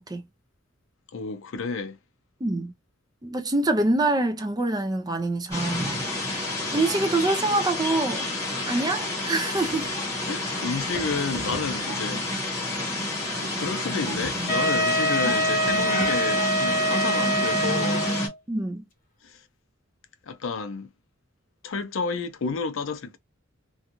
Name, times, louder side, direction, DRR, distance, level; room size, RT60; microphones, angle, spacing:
voice 1, 1.1-2.0 10.3-12.6 13.4-18.1 19.2-19.4 20.3-20.9 21.6-23.2, left 4 dB, 65° left, 0.5 m, -31 dB
voice 2, 2.4-2.7 3.2-5.9 6.7-8.3 8.7-9.9 12.1-12.2 18.5-18.8, right 2 dB, 20° right, 0.5 m, -25 dB
sound 1, 5.5-18.3, left 1 dB, 15° left, 1.0 m, -29 dB
sound 2, 9.5-10.2 10.9-12.2 14.1-14.8 15.5-16.4, right 4 dB, 80° right, 0.6 m, -43 dB
Wind instrument woodwind instrument, 14.5-18.3, right 1 dB, 40° left, 0.9 m, -25 dB
2.6 x 2.3 x 2.9 m
head